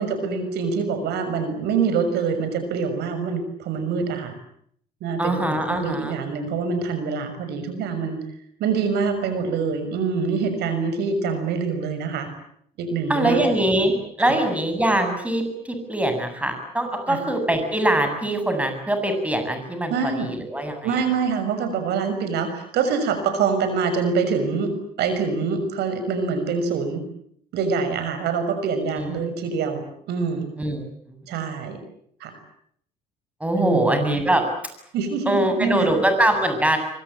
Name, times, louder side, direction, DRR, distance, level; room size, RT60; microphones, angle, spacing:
voice 1, 0.0-4.3 5.0-8.2 8.6-12.3 12.8-13.4 14.3-14.4 17.1-17.2 19.9-20.3 20.8-27.0 27.5-30.5 31.3-31.8 32.2-32.3 33.6-34.0 34.9-35.9, right 5 dB, 80° right, 9 dB, 6.3 m, -25 dB
voice 2, 5.2-6.1 13.1-21.0 28.9-29.1 30.6-31.2 33.4-34.4 35.3-36.8, right 1 dB, 10° right, 6 dB, 7.9 m, -23 dB
25.5 x 24.5 x 8.8 m, 0.66 s
cardioid pair, 110°, 17 cm